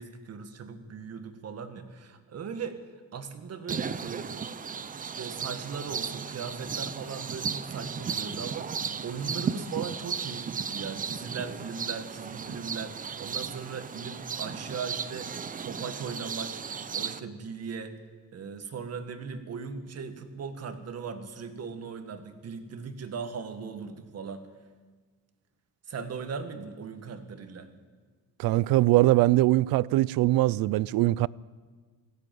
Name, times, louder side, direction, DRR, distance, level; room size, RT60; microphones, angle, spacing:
voice 1, 0.0-2.8 3.1-4.4 4.8-16.6 16.9-18.0 18.3-24.5 25.9-27.7, right 5 dB, 40° right, 1.9 m, -38 dB
sound 1, 3.7-17.2, right 6 dB, 25° right, 0.6 m, -35 dB
voice 2, 28.4-31.3, right 17 dB, 70° right, 0.5 m, -22 dB
19.5 x 16.0 x 9.3 m
cardioid pair, 145°, 36 cm